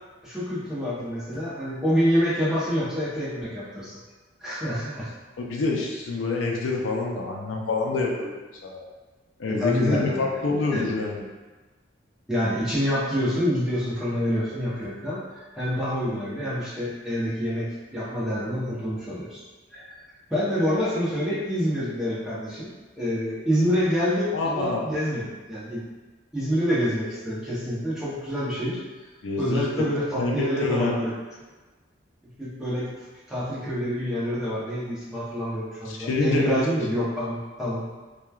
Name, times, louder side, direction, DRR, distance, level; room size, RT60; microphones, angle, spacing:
voice 1, 0.2-4.0 4.4-5.1 9.5-10.2 10.7-10.9 12.3-19.4 19.7-20.0 20.3-25.8 26.3-28.8 29.4-31.1 32.4-32.9 33.3-37.9, equal, 5° right, -10 dB, 0.7 m, -27 dB
voice 2, 5.4-8.8 9.4-11.2 24.3-24.9 29.2-29.9 30.2-30.9 35.9-36.7, left 3 dB, 85° left, -1 dB, 0.4 m, -27 dB
3.0 x 2.3 x 2.3 m, 1.3 s
head